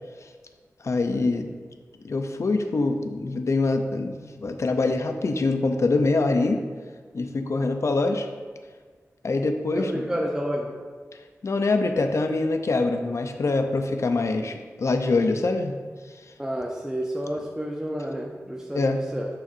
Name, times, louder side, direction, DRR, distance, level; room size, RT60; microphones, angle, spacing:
voice 1, 0.8-1.5 2.0-6.6 7.1-8.3 9.2-10.1 11.4-15.8 18.7-19.0, left 3 dB, 55° left, 6 dB, 0.5 m, -24 dB
voice 2, 9.7-10.7 16.4-19.3, equal, 10° right, -1 dB, 0.6 m, -30 dB
6.9 x 5.8 x 2.5 m, 1.5 s
cardioid pair, 60°, 6 cm